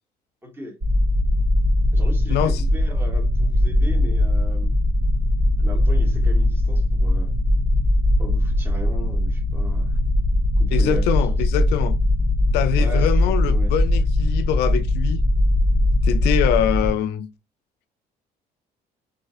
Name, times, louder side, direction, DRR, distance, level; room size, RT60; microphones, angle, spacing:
voice 1, 0.4-0.8 1.9-4.7 5.6-7.3 8.2-9.9 10.6-11.4 12.8-13.8, right 1 dB, 15° right, 1.5 m, -37 dB
sound 1, 0.8-16.9, left 1 dB, 45° right, 1.9 m, -20 dB
voice 2, 2.3-2.6 10.7-12.0 12.5-15.2 16.0-17.3, left 11 dB, 80° left, 0.4 m, -24 dB
4.2 x 2.8 x 2.5 m
cardioid pair, 110°, 17 cm